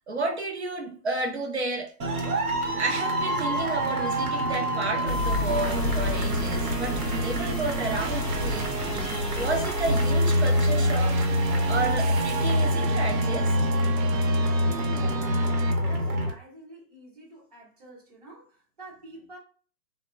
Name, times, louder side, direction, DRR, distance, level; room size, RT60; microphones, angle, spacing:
voice 1, 0.1-1.9 2.8-9.0 9.4-11.2 11.7-13.6, right 3 dB, 45° right, 0.4 m, -31 dB
sound 1, 2.0-16.3, equal, 65° right, 0.9 m, -26 dB
sound 2, 5.1-12.4, left 3 dB, 55° left, 0.5 m, -31 dB
sound 3, 5.5-15.7, right 7 dB, 90° right, 0.6 m, -35 dB
voice 2, 14.1-19.4, right 2 dB, 25° right, 0.8 m, -46 dB
2.1 x 2.0 x 3.7 m
hypercardioid pair, 175°, 48 cm